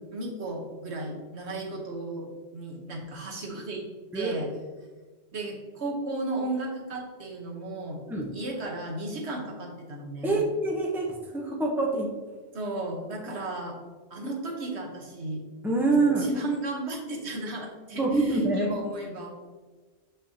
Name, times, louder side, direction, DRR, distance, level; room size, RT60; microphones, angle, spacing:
voice 1, 0.1-2.3 2.5-3.9 4.1-4.5 5.3-8.0 8.3-10.4 12.5-13.8 14.1-15.4 16.2-19.3, right 2 dB, 75° right, 0 dB, 1.4 m, -34 dB
voice 2, 10.2-11.1 11.3-12.1 15.6-16.3 17.9-18.7, right 2 dB, ahead, -1 dB, 0.8 m, -25 dB
7.1 x 5.4 x 2.8 m, 1.3 s
omnidirectional pair, 1.1 m